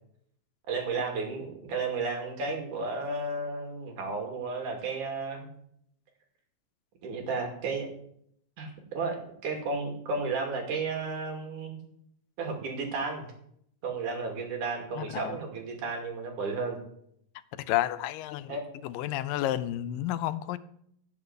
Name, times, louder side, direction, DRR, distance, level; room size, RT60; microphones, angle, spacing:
voice 1, 0.7-5.5 7.0-7.9 8.6-9.2 9.4-11.8 12.4-13.3 13.8-16.8 18.5-18.6, right 4 dB, 60° right, 3.8 m, -33 dB
voice 2, 15.0-15.4 17.7-18.6 18.8-20.6, left 13 dB, 80° left, 2.4 m, -31 dB
16.5 x 6.9 x 8.1 m
omnidirectional pair, 4.0 m